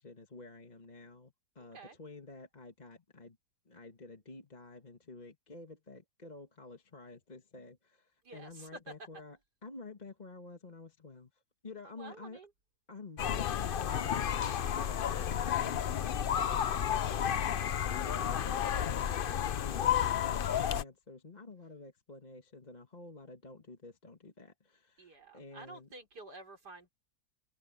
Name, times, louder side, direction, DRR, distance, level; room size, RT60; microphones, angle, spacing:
voice 1, 0.0-3.4 3.7-12.4 12.9-16.3 16.7-25.9, left 3 dB, 25° left, 1.7 m, -50 dB
voice 2, 1.6-2.0 8.2-8.9 11.9-12.5 17.2-17.6 20.4-20.8 25.0-26.9, right 3 dB, 75° right, 5.0 m, -50 dB
sound 1, 13.2-20.8, left 9 dB, 80° left, 0.4 m, -31 dB
omnidirectional pair, 1.8 m